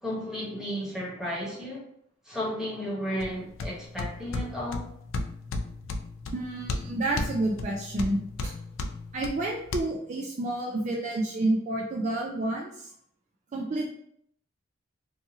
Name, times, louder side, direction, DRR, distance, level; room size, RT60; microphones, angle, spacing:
voice 1, 0.0-1.8 2.2-4.8, equal, 5° right, -6 dB, 0.9 m, -33 dB
sound 1, 3.2-9.8, left 2 dB, 70° left, 0.3 m, -35 dB
voice 2, 6.3-8.5 9.1-12.9 13.5-13.9, right 2 dB, 40° right, -2 dB, 0.3 m, -29 dB
2.7 x 2.4 x 2.7 m, 0.71 s
head